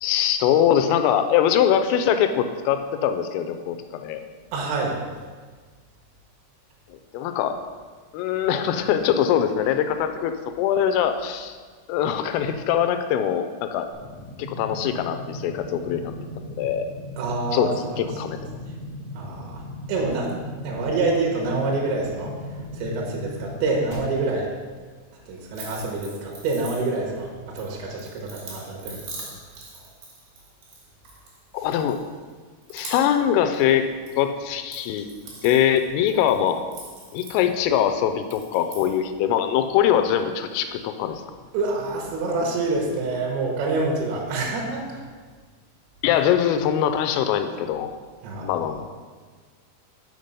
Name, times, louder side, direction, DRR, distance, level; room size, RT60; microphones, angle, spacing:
voice 1, 0.0-4.2 7.1-7.6 8.1-10.3 10.6-11.6 11.9-13.9 14.4-16.1 16.6-16.9 17.5-18.6 31.5-32.0 32.7-33.9 34.2-35.1 35.4-36.6 37.1-41.2 46.0-47.9 48.4-48.9, left 9 dB, 85° left, 8 dB, 3.1 m, -22 dB
voice 2, 4.5-5.0 17.2-18.0 19.1-19.6 19.9-20.4 20.6-22.4 22.7-24.5 25.3-29.3 35.3-35.4 41.5-45.0 48.2-48.6, right 3 dB, 75° right, -1 dB, 3.2 m, -27 dB
sound 1, 13.9-23.9, left 1 dB, 25° left, 1.6 m, -38 dB
sound 2, 25.5-27.2 27.6-31.4 31.7-32.3 32.6-33.3 33.5-34.2 34.5-37.8 38.2-39.0, right 3 dB, 55° right, 3.2 m, -42 dB
6.6 x 5.7 x 5.3 m, 1.5 s
omnidirectional pair, 5.8 m